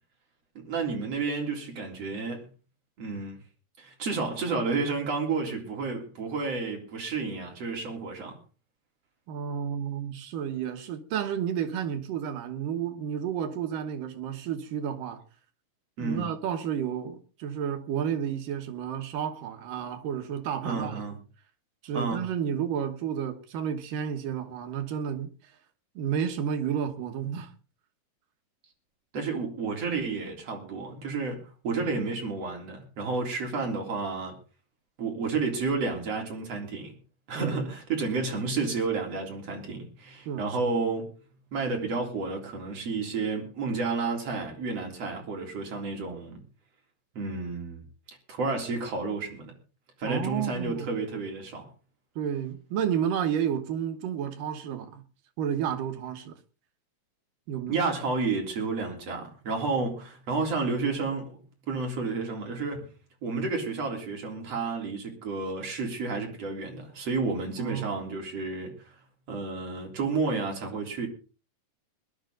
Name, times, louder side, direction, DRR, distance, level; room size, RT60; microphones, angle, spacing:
voice 1, 0.6-2.5 3.0-3.4 3.8-8.4 16.0-16.3 20.6-21.2 21.9-22.2 29.1-34.4 35.0-36.9 37.3-41.1 41.5-46.4 47.1-47.8 48.3-49.5 50.0-51.7 57.7-61.4 61.7-62.9 63.2-68.7 69.3-71.1, right 4 dB, 45° right, 4.5 m, -31 dB
voice 2, 9.3-15.2 16.0-21.0 21.8-25.3 26.0-27.5 31.8-31.9 37.3-37.7 40.3-40.6 50.0-50.9 52.2-55.0 55.4-56.4 57.5-57.8 67.6-67.9, right 8 dB, 75° right, 3.0 m, -31 dB
21.0 x 12.0 x 3.8 m
omnidirectional pair, 3.9 m